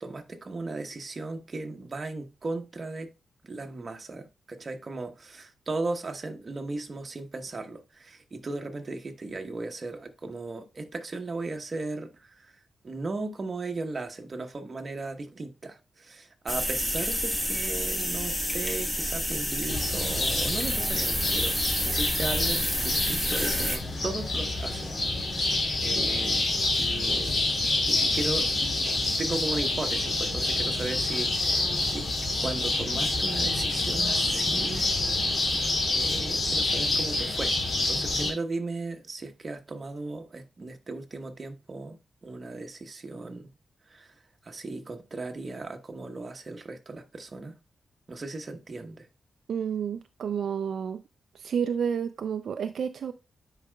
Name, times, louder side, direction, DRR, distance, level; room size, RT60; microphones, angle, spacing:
voice 1, 0.0-3.1 3.4-12.5 12.8-26.5 26.8-27.4 27.9-28.7 29.2-32.1 32.4-34.9 35.3-35.5 35.8-43.5 43.9-44.1 44.4-47.6 48.1-49.1, right 3 dB, 35° right, 1.0 m, -36 dB
sound 1, 16.5-23.8, equal, 10° left, 1.3 m, -29 dB
sound 2, 19.7-38.3, left 2 dB, 50° left, 2.6 m, -27 dB
voice 2, 49.5-51.0 51.3-53.1, right 7 dB, 75° right, 0.4 m, -30 dB
9.7 x 4.8 x 2.3 m
wide cardioid pair, 110°, 0 cm